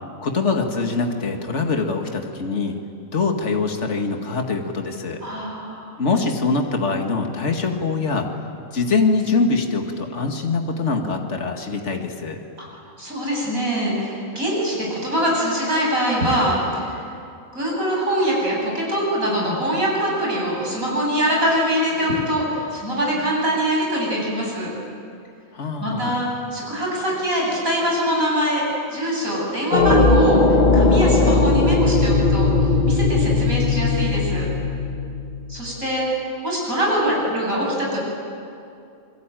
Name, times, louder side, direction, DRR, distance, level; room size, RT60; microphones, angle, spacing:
voice 1, 0.2-2.8 3.1-5.2 6.0-8.3 8.7-12.4 25.5-26.2, left 4 dB, 55° left, 3 dB, 2.3 m, -23 dB
voice 2, 5.2-5.9 12.6-12.7 13.0-17.0 17.5-24.7 25.8-32.5 32.8-34.5 35.5-36.0 36.4-38.0, equal, 75° right, -3 dB, 8.5 m, -23 dB
sound 1, 29.7-35.6, left 3 dB, 35° left, 1.3 m, -18 dB
28.0 x 22.0 x 9.2 m, 2.5 s
omnidirectional pair, 1.5 m